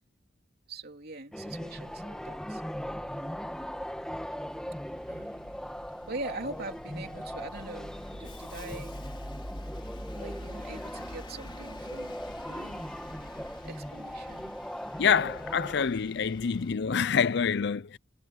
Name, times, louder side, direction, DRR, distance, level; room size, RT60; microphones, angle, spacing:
voice 1, 0.7-2.6 5.1-5.5 6.1-9.0 10.1-12.8 13.6-14.6, right 2 dB, 55° right, 3.4 m, -42 dB
sound 1, 1.3-15.9, equal, 5° left, 2.2 m, -39 dB
Bus, 1.5-16.8, left 1 dB, 30° left, 4.2 m, -46 dB
voice 2, 15.0-18.0, left 6 dB, 65° left, 0.5 m, -26 dB
head